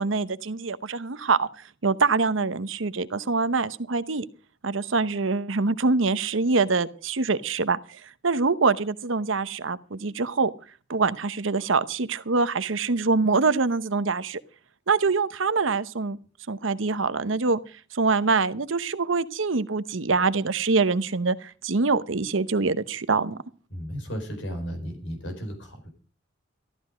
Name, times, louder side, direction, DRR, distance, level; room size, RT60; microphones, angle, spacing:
voice 1, 0.0-1.5 1.8-4.2 4.6-10.5 10.9-14.4 14.9-16.2 16.5-17.6 17.9-23.4, right 4 dB, 75° right, 14 dB, 0.9 m, -24 dB
voice 2, 23.7-25.9, equal, 65° left, 6 dB, 4.5 m, -34 dB
14.0 x 13.0 x 5.0 m, 0.37 s
head